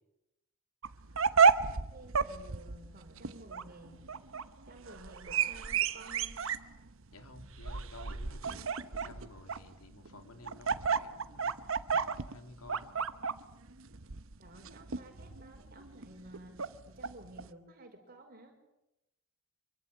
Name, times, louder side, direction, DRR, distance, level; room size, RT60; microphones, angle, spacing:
sound 1, 0.8-17.5, right 5 dB, 60° right, 1.0 m, -32 dB
voice 1, 1.7-4.0 4.7-6.4 14.4-16.6 16.9-18.6, right 1 dB, 40° right, 4 dB, 5.3 m, -53 dB
voice 2, 7.1-11.5 11.9-12.9, left 2 dB, 80° left, 7 dB, 3.2 m, -53 dB
25.5 x 23.5 x 8.5 m, 0.90 s
head